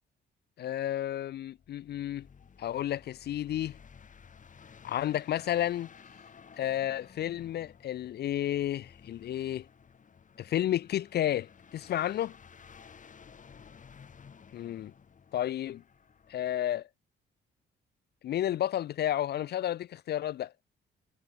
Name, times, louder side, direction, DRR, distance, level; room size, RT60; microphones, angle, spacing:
voice 1, 0.6-2.3 2.6-3.8 4.8-5.9 6.6-9.7 10.4-12.3 14.5-14.9 15.3-15.8 16.3-16.9 18.2-20.5, left 12 dB, 55° left, 0.4 m, -31 dB
sound 1, 1.4-16.5, left 6 dB, 40° left, 1.9 m, -55 dB
cardioid pair, 90°, 20 cm